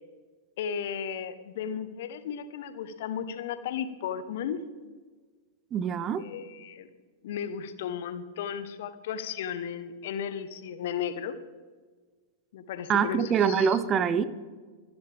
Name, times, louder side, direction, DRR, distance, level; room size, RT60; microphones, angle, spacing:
voice 1, 0.6-4.6 6.2-6.9 7.2-11.4 12.5-13.8, left 8 dB, 60° left, 12 dB, 1.1 m, -35 dB
voice 2, 5.7-6.2 12.9-14.3, right 7 dB, 30° right, 15 dB, 0.9 m, -24 dB
25.5 x 10.5 x 3.5 m, 1.4 s
hypercardioid pair, 100°, 0 cm